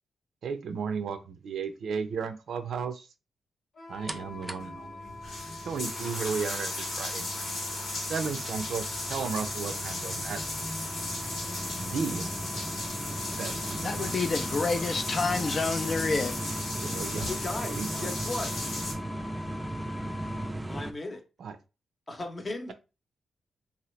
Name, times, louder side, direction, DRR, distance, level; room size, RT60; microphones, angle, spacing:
voice 1, 0.4-3.1 3.9-5.1 5.6-7.6 8.0-10.5 11.8-12.3 13.4-14.2 16.8-17.3 17.6-18.1 21.4-21.6, right 6 dB, 75° right, 0.4 m, -34 dB
Wind instrument woodwind instrument, 3.7-20.5, left 3 dB, 65° left, 1.1 m, -45 dB
sound 1, 4.1-20.9, right 1 dB, 15° right, 0.4 m, -38 dB
sound 2, 4.6-4.7 5.1-18.9, left 2 dB, 85° left, 1.3 m, -36 dB
voice 2, 13.8-16.3, left 4 dB, 50° left, 0.4 m, -28 dB
voice 3, 17.3-18.6 20.7-21.2 22.1-22.7, left 2 dB, 35° left, 0.8 m, -36 dB
2.8 x 2.4 x 3.1 m
cardioid pair, 65°, 0 cm